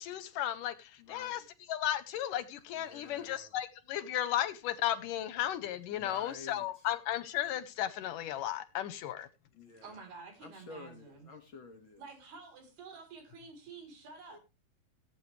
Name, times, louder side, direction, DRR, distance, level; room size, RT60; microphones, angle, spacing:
voice 1, 0.0-1.4 1.7-9.3, left 12 dB, 75° left, 2.1 m, -35 dB
voice 2, 1.0-1.5 2.8-3.5 5.9-6.8 9.6-10.0 10.4-12.0 14.3-14.4, left 3 dB, 50° left, 1.6 m, -51 dB
voice 3, 9.8-11.3 12.0-14.4, right 4 dB, 85° right, 5.8 m, -50 dB
18.0 x 8.8 x 3.2 m
omnidirectional pair, 4.4 m